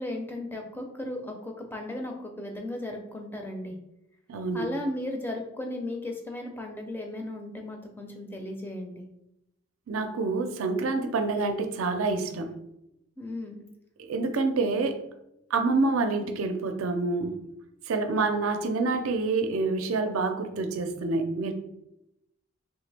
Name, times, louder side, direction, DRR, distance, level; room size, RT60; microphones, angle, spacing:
voice 1, 0.0-3.8 4.5-9.1 13.2-13.7, left 1 dB, 10° left, 0.4 m, -35 dB
voice 2, 4.3-4.7 9.9-12.6 14.0-15.0 15.5-17.4 17.9-21.5, right 3 dB, 85° right, 0.4 m, -27 dB
3.4 x 2.9 x 3.2 m
head